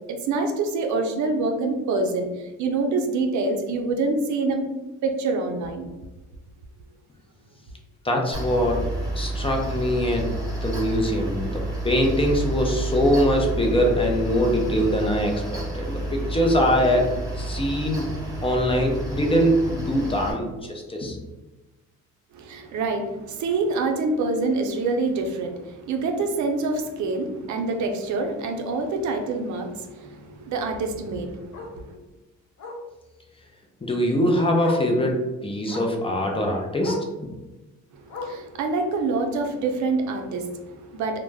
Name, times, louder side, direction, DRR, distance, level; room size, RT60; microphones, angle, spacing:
voice 1, 0.1-4.7 5.0-5.9 22.3-32.0 37.9-41.2, right 3 dB, 70° right, 4 dB, 0.5 m, -26 dB
voice 2, 8.0-8.9 9.1-10.3 10.6-18.1 18.4-21.2 33.8-37.0, equal, 20° left, 1 dB, 0.5 m, -23 dB
Mechanical fan, 8.3-20.3, right 1 dB, 10° right, 1.0 m, -30 dB
Bark, 25.1-25.2 25.6-25.8 26.1-26.2 26.5-26.6 28.0-28.1 30.6-30.7 31.5-31.8 32.6-32.9 34.1-34.2 34.6-34.9 35.7-36.0 36.8-37.1 38.1-38.5 39.5-39.6, left 2 dB, 70° left, 0.6 m, -36 dB
2.2 x 2.0 x 3.3 m, 1.1 s
cardioid pair, 90°, 30 cm